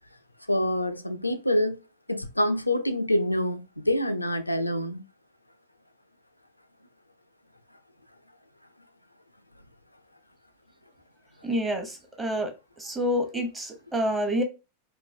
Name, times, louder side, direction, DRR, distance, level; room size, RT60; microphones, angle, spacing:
voice 1, 0.5-1.8 2.1-5.0, left 1 dB, 85° left, 0.4 m, -26 dB
voice 2, 11.4-12.5 12.8-14.4, equal, 15° right, 0.8 m, -28 dB
3.8 x 2.0 x 2.4 m
figure-of-eight pair, 90°, 0 cm